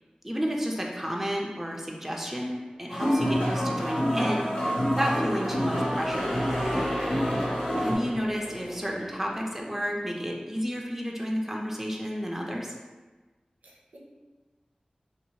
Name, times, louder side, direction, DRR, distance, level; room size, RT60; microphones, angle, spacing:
voice 1, 0.2-6.4 7.8-12.7, equal, 10° right, -1 dB, 0.4 m, -31 dB
sound 1, 2.9-8.0, equal, 70° left, 0.9 m, -27 dB
sound 2, 3.0-9.9, equal, 10° left, 0.9 m, -38 dB
voice 2, 7.0-7.4 13.6-14.0, right 1 dB, 90° right, -3 dB, 0.5 m, -45 dB
2.9 x 2.3 x 2.7 m, 1.3 s
wide cardioid pair, 60°, 2 cm